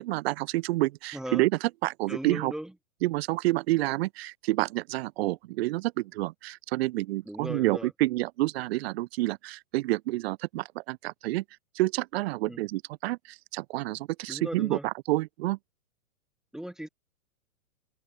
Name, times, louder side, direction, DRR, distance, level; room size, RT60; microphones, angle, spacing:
voice 1, 0.0-2.5 3.0-11.4 11.7-15.6, right 18 dB, 45° right, 0.9 m, -29 dB
voice 2, 1.1-1.4 2.1-2.7 7.3-7.9 12.5-12.6 14.3-14.9 16.5-16.9, right 1 dB, ahead, 0.5 m, -37 dB
open air
hypercardioid pair, 125°, 43 cm